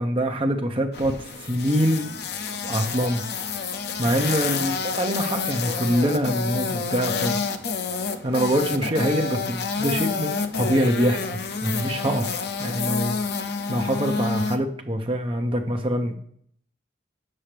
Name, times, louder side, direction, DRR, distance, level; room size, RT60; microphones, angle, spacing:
voice 1, 0.0-2.1 2.6-3.2 4.0-7.4 8.2-13.1 13.7-16.1, equal, 30° right, 3 dB, 0.8 m, -24 dB
sound 1, 0.9-14.6, left 5 dB, 55° left, 0.5 m, -29 dB
7.5 x 5.4 x 3.4 m, 0.63 s
head